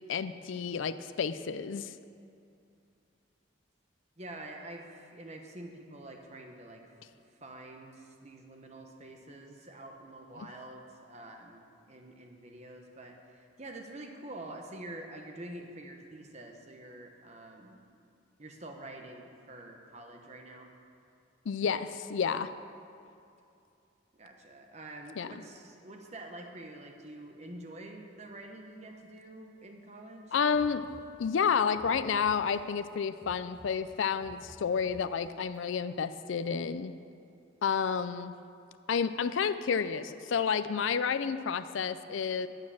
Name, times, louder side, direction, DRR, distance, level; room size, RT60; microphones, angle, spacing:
voice 1, 0.1-1.9 10.4-10.5 21.5-22.5 25.2-25.3 30.3-30.9 31.2-36.9 37.6-38.3 38.9-42.5, left 6 dB, 75° left, 12 dB, 0.4 m, -30 dB
voice 2, 4.2-6.9 7.4-17.8 18.4-20.7 24.2-30.3, right 1 dB, 35° right, 2 dB, 1.1 m, -47 dB
sound 1, 30.5-32.9 33.2-35.6, right 1 dB, 25° left, 1.5 m, -53 dB
9.7 x 8.7 x 7.1 m, 2.6 s
head